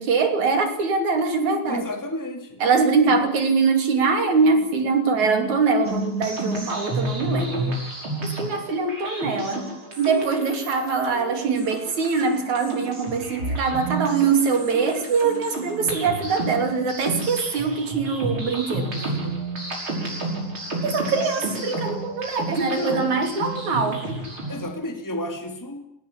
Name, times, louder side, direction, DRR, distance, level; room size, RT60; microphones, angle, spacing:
voice 1, 0.0-1.8 2.6-7.6 8.2-18.9 20.8-24.0, right 4 dB, 60° right, 6 dB, 4.4 m, -23 dB
voice 2, 1.7-2.6 3.0-3.2 7.3-7.8 19.0-19.3 21.4-21.5 22.5-23.1 24.5-25.8, left 1 dB, 5° left, 4 dB, 2.7 m, -32 dB
sound 1, 5.8-24.7, right 2 dB, 35° right, 6.6 m, -31 dB
19.5 x 18.0 x 9.9 m, 0.76 s
omnidirectional pair, 3.8 m